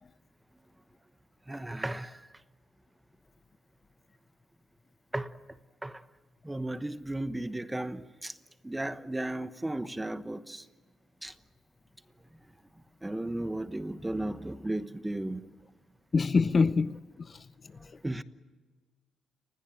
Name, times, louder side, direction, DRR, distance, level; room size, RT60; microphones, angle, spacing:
voice 1, 1.5-2.1 5.1-5.3 5.8-6.0 6.4-8.3 8.6-10.6 11.2-11.3 13.0-15.4 18.0-18.2, right 1 dB, 10° right, 1.1 m, -34 dB
voice 2, 16.1-17.5, left 4 dB, 35° left, 0.7 m, -26 dB
29.0 x 21.0 x 7.6 m
cardioid pair, 90°, 0 cm